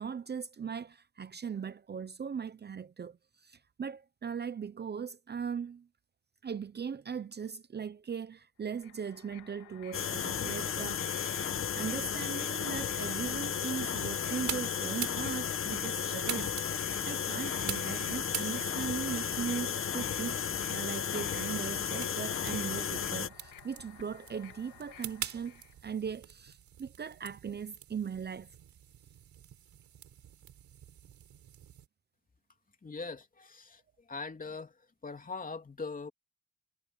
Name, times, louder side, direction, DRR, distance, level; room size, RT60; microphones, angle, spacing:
voice 1, 0.0-5.9 6.4-16.5 16.8-28.5, right 7 dB, 35° right, 0.9 m, -39 dB
sound 1, 8.7-25.8, left 13 dB, 85° left, 2.6 m, -54 dB
sound 2, 9.9-23.3, left 8 dB, 45° left, 1.2 m, -34 dB
sound 3, 12.9-31.9, right 10 dB, 70° right, 4.1 m, -46 dB
voice 2, 32.8-33.8 34.1-34.7 35.0-36.1, left 4 dB, 25° left, 3.0 m, -41 dB
cardioid pair, 90°, 30 cm